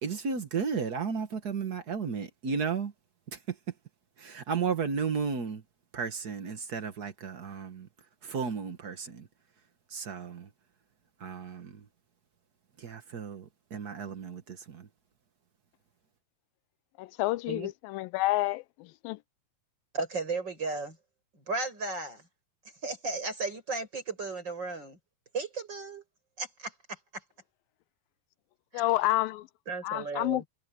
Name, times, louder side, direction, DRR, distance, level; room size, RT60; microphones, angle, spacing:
voice 1, 0.0-2.9 3.3-3.6 4.2-5.6 5.9-7.9 8.2-9.3 9.9-10.5 11.2-11.9 12.8-14.9, right 6 dB, 90° right, 0.8 m, -34 dB
voice 2, 17.0-18.6 19.0-19.2 28.7-29.5 29.8-30.4, left 18 dB, 85° left, 2.3 m, -28 dB
voice 3, 19.9-21.0 21.3-22.2 22.8-25.0 25.3-26.0 26.4-27.2 28.7-28.9 29.7-30.4, right 3 dB, 30° right, 7.2 m, -35 dB
omnidirectional pair, 4.1 m